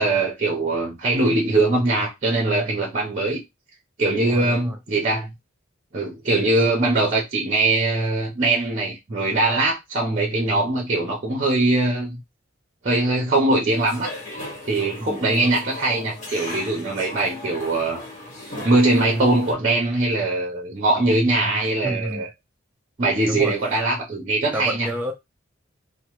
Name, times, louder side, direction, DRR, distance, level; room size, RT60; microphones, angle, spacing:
voice 1, 0.0-3.4 4.0-5.3 5.9-12.2 12.8-14.1 14.7-18.1 18.6-22.3 23.0-24.9, right 2 dB, 40° right, 0.7 m, -21 dB
voice 2, 4.3-4.8 15.0-15.3 21.8-22.3 23.3-23.5 24.5-25.1, right 1 dB, 10° right, 0.3 m, -29 dB
sound 1, 13.7-19.5, left 1 dB, 40° left, 1.3 m, -37 dB
2.9 x 2.1 x 2.9 m
head